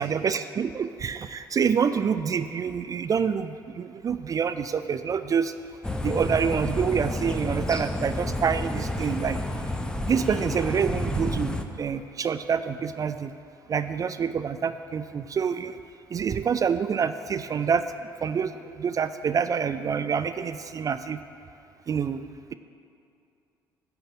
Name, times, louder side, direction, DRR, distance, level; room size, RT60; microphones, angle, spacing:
voice 1, 0.0-5.5 6.0-9.4 10.1-13.3 13.7-15.8 16.1-17.9 18.2-21.2 21.9-22.2, right 6 dB, 30° right, 11 dB, 0.4 m, -27 dB
sound 1, 5.8-11.6, left 1 dB, 5° left, 0.7 m, -30 dB
11.0 x 4.1 x 7.9 m, 2.6 s
figure-of-eight pair, 50°, 11 cm